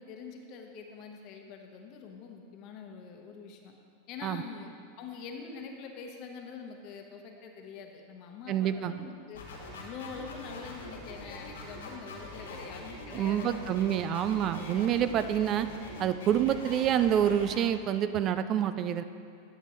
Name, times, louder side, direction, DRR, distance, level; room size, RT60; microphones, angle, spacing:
voice 1, 0.0-3.7 4.1-4.7 5.0-9.4 9.7-13.6, left 5 dB, 50° left, 2 dB, 1.1 m, -44 dB
voice 2, 8.5-9.0 13.1-15.7 16.0-19.0, right 10 dB, 40° right, 12 dB, 0.3 m, -27 dB
sound 1, 9.3-17.6, left 2 dB, 90° left, 1.7 m, -44 dB
11.5 x 6.7 x 3.1 m, 2.4 s
hypercardioid pair, 105°, 0 cm